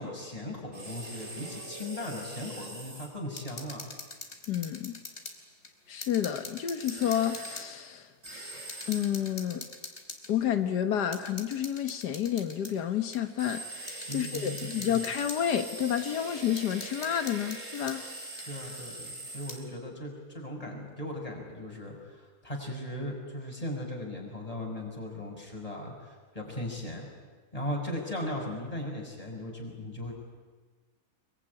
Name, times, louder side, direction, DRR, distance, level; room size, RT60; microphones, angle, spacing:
voice 1, 0.0-3.9 14.1-15.0 18.4-27.1 27.5-30.1, left 1 dB, 20° left, 0 dB, 6.2 m, -38 dB
sound 1, 0.7-3.1 6.8-7.6 8.2-9.1 13.4-19.7, right 2 dB, 50° right, 5.2 m, -42 dB
sound 2, 3.3-5.4 5.6-7.7 8.3-8.4 8.7-10.3 11.1-12.7 13.1-13.2 13.9-15.4 16.0-16.1 16.6-18.0 18.4-18.5 19.3-19.6, left 3 dB, 45° left, 3.1 m, -44 dB
voice 2, 4.5-5.0 5.9-8.1 8.9-9.7 10.3-18.1, left 9 dB, 90° left, 8 dB, 1.8 m, -30 dB
25.0 x 23.0 x 9.8 m, 1.4 s
omnidirectional pair, 1.7 m